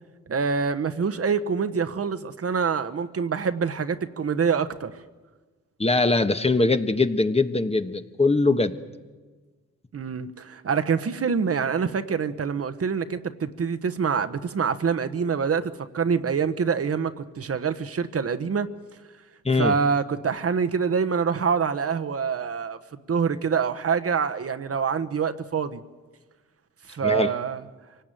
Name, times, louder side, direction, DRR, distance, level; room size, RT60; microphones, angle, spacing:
voice 1, 0.3-4.9 9.9-18.7 19.5-22.8 23.1-25.8 26.9-27.6, right 6 dB, 50° right, 10 dB, 1.2 m, -25 dB
voice 2, 5.8-8.7 19.4-19.7 27.0-27.3, left 3 dB, 20° left, 9 dB, 1.3 m, -22 dB
24.5 x 18.0 x 9.1 m, 1.4 s
cardioid pair, 70°, 30 cm